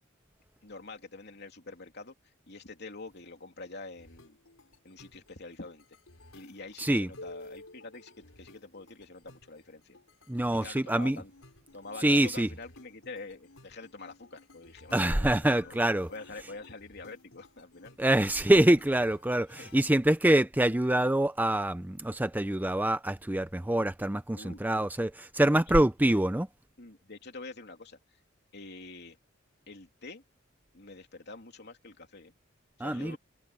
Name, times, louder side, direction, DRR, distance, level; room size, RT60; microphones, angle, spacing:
voice 1, 0.6-2.1 2.5-4.4 4.8-5.8 6.3-10.0 10.6-11.3 11.7-15.8 16.1-18.0 19.6-19.7 24.3-24.6 25.5-25.8 26.1-26.2 26.8-28.0 28.5-29.2 29.7-30.2 30.7-32.3 32.8-33.2, left 3 dB, 55° left, 3.1 m, -46 dB
sound 1, 4.0-20.1, left 2 dB, 90° left, 4.9 m, -54 dB
voice 2, 6.8-7.1 10.3-11.2 12.0-12.5 14.9-16.1 18.0-26.5 32.8-33.2, right 1 dB, 10° right, 0.5 m, -25 dB
head